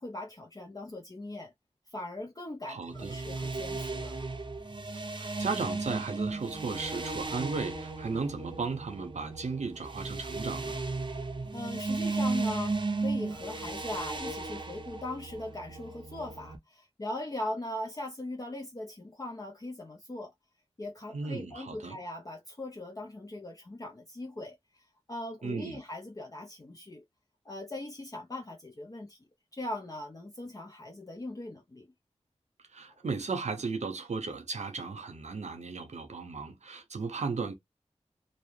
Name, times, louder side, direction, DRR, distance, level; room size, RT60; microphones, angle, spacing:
voice 1, 0.0-1.5 1.9-4.2 11.5-20.3 20.8-27.0 27.4-29.2 29.5-31.9 32.9-33.0, left 1 dB, 30° left, 0.5 m, -40 dB
voice 2, 2.6-3.1 4.9-10.8 21.1-22.0 25.4-25.8 32.7-37.6, right 4 dB, 85° right, 0.7 m, -35 dB
sound 1, 2.9-16.6, right 3 dB, 45° right, 0.6 m, -35 dB
2.6 x 2.0 x 3.1 m
wide cardioid pair, 50°, 12 cm